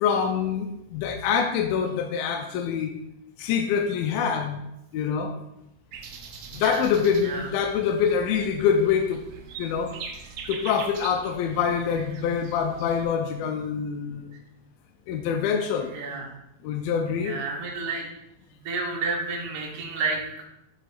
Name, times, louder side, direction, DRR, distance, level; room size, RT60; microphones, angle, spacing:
voice 1, 0.0-2.9 3.4-4.6 4.9-5.3 6.5-9.2 9.6-9.9 10.5-14.3 15.1-15.9 16.6-17.4, left 7 dB, 80° left, 4 dB, 2.2 m, -25 dB
sound 1, 5.9-13.1, right 5 dB, 90° right, 1.6 m, -42 dB
voice 2, 6.5-6.8 7.2-7.5 15.9-16.3 17.2-18.1 18.5-20.5, right 3 dB, 75° right, -1 dB, 1.2 m, -30 dB
8.3 x 5.7 x 2.5 m, 0.86 s
omnidirectional pair, 4.2 m